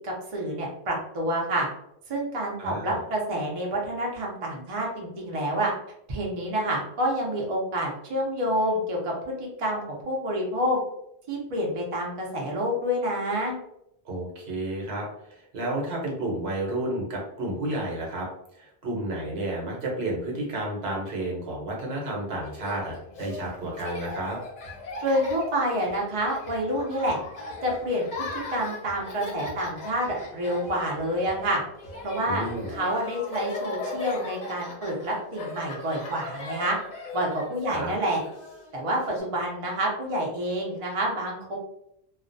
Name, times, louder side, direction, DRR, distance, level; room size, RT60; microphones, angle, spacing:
voice 1, 0.0-1.7 2.1-5.7 6.1-10.8 11.3-13.5 25.0-27.2 27.6-28.1 28.3-31.6 32.0-32.4 32.7-36.8 37.1-38.2 38.7-41.6, equal, 40° right, -2 dB, 0.6 m, -28 dB
voice 2, 2.6-3.0 14.0-18.3 18.6-24.4 32.3-32.7 37.7-37.9, right 1 dB, 70° right, -1 dB, 1.0 m, -31 dB
Laughter, 22.4-39.2, left 2 dB, 50° left, 0.7 m, -38 dB
2.4 x 2.1 x 2.5 m, 0.76 s
omnidirectional pair, 1.1 m